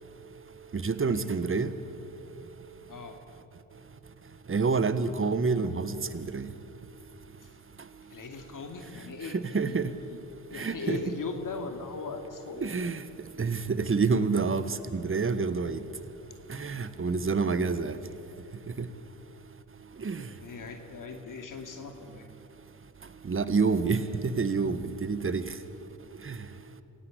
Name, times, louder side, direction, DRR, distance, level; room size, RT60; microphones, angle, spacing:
voice 1, 0.7-1.7 4.5-6.5 9.3-9.9 10.5-11.0 12.6-13.0 13.4-15.8 16.5-18.0 18.8-18.9 20.0-20.3 23.2-25.4 26.2-26.4, right 4 dB, 30° right, 13 dB, 1.5 m, -28 dB
voice 2, 2.9-3.2 7.4-7.6 8.1-10.2 10.5-12.7 20.4-22.3, left 4 dB, 45° left, 4 dB, 2.6 m, -39 dB
26.0 x 17.0 x 8.3 m, 2.9 s
hypercardioid pair, 50°, 45 cm